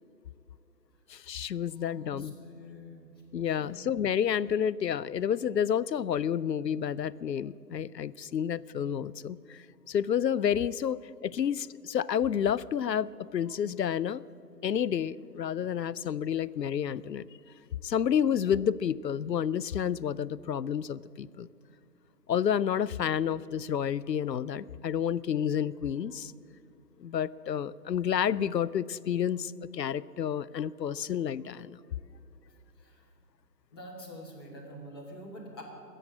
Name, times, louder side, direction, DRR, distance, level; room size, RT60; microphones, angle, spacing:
voice 1, 1.1-2.3 3.3-14.2 14.6-17.3 17.8-21.5 22.3-26.3 27.0-31.8, left 8 dB, 80° left, 20 dB, 0.5 m, -30 dB
voice 2, 1.9-3.1 3.4-3.7 32.8-33.0 33.7-35.6, equal, 15° left, -4 dB, 1.4 m, -46 dB
14.0 x 7.8 x 9.7 m, 2.4 s
figure-of-eight pair, 155°, 49 cm